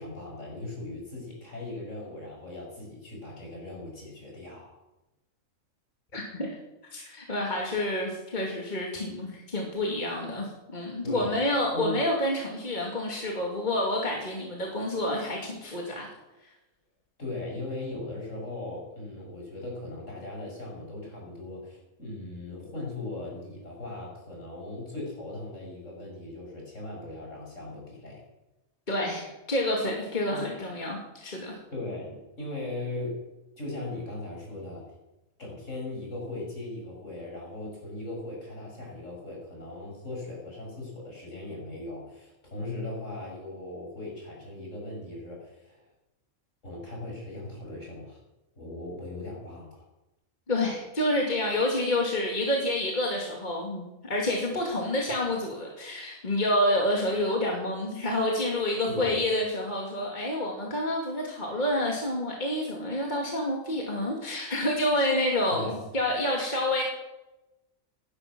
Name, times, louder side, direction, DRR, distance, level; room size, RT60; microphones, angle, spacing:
voice 1, 0.0-4.8 11.0-11.3 11.7-12.0 17.2-28.2 30.3-30.5 31.7-33.2 33.6-34.9 35.4-45.9 46.6-48.2 48.6-49.8 58.9-59.2 65.5-65.8, left 2 dB, 60° left, -2 dB, 6.3 m, -38 dB
voice 2, 6.1-6.5 6.9-16.1 28.9-31.6 50.5-66.8, left 1 dB, 35° left, -1 dB, 2.5 m, -28 dB
16.5 x 11.5 x 6.1 m, 0.99 s
omnidirectional pair, 1.4 m